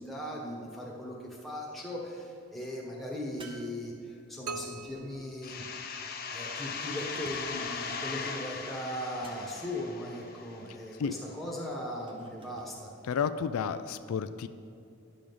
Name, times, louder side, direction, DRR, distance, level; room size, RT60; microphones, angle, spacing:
voice 1, 0.0-5.6 6.3-12.9, left 1 dB, ahead, -3 dB, 1.3 m, -38 dB
sound 1, 3.4-4.5 7.0-7.8 9.2-9.8 12.1-12.7, right 2 dB, 25° right, 0.7 m, -52 dB
sound 2, 4.5-6.4, right 4 dB, 80° right, 0.4 m, -43 dB
sound 3, 5.4-10.9, left 5 dB, 40° left, 0.7 m, -39 dB
voice 2, 13.0-14.5, left 6 dB, 80° left, 11 dB, 0.3 m, -31 dB
10.0 x 6.3 x 5.3 m, 2.5 s
head